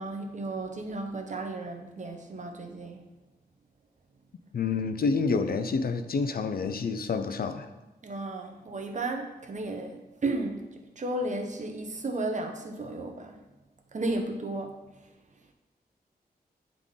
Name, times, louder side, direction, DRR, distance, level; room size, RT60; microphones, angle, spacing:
voice 1, 0.0-3.0 8.0-10.7 11.0-13.4 13.9-14.8, right 2 dB, 50° right, 3 dB, 0.9 m, -34 dB
voice 2, 4.5-7.7, left 4 dB, 65° left, 9 dB, 0.5 m, -28 dB
10.0 x 3.7 x 3.7 m, 1.1 s
wide cardioid pair, 120°, 17 cm